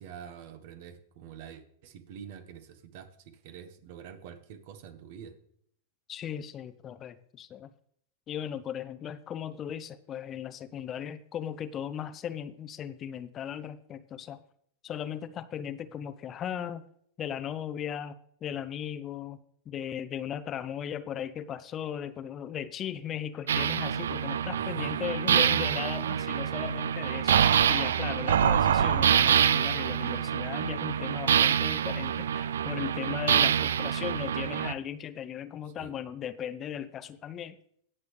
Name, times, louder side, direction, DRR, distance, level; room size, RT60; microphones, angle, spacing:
voice 1, 0.0-5.4 24.6-25.1 35.8-35.9, right 8 dB, 55° right, 11 dB, 1.2 m, -46 dB
voice 2, 6.1-7.7 8.3-14.4 14.8-16.9 17.2-18.2 18.4-19.4 19.7-37.6, left 9 dB, 30° left, 14 dB, 0.6 m, -37 dB
sound 1, 23.5-34.7, right 9 dB, 75° right, 0.3 m, -26 dB
17.5 x 6.7 x 3.3 m, 0.67 s
hypercardioid pair, 100°, 0 cm